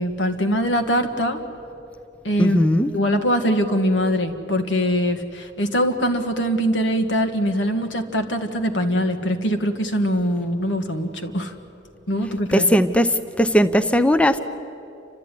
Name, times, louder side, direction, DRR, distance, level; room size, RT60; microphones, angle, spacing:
voice 1, 0.0-1.4 2.2-2.6 2.9-11.5 12.1-12.7, equal, 70° left, 6 dB, 1.7 m, -22 dB
voice 2, 2.4-2.9 12.5-14.4, equal, 5° left, 11 dB, 0.6 m, -18 dB
29.5 x 13.0 x 9.9 m, 2.7 s
head